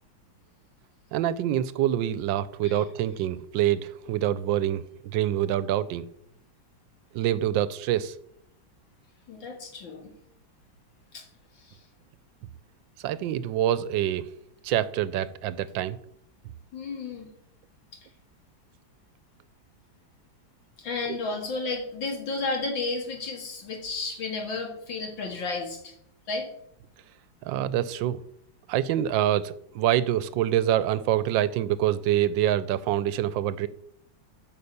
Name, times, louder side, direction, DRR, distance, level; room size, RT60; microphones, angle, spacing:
voice 1, 1.1-6.1 7.1-8.1 13.0-14.3 14.6-16.0 21.1-21.2 27.4-28.2 28.7-33.7, right 12 dB, 80° right, 16 dB, 1.3 m, -26 dB
voice 2, 9.3-10.1 11.1-11.2 11.6-11.8 16.7-17.3 17.9-18.0 20.8-25.9 26.3-26.5, left 3 dB, 85° left, 2 dB, 2.7 m, -32 dB
9.6 x 5.4 x 6.9 m, 0.73 s
omnidirectional pair, 2.0 m